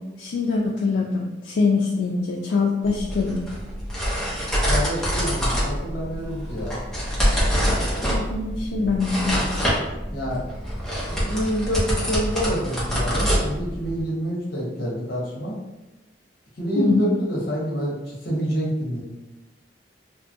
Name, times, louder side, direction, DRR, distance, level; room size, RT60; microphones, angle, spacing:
voice 1, 0.2-3.4 8.1-9.4 16.8-17.1, left 4 dB, 80° left, -1 dB, 0.3 m, -23 dB
sound 1, 2.8-14.0, equal, 5° left, 0.7 m, -25 dB
voice 2, 4.6-6.8 10.1-10.4 10.9-15.6 16.6-19.0, equal, 60° left, -4 dB, 0.9 m, -27 dB
2.8 x 2.3 x 2.6 m, 1.1 s
head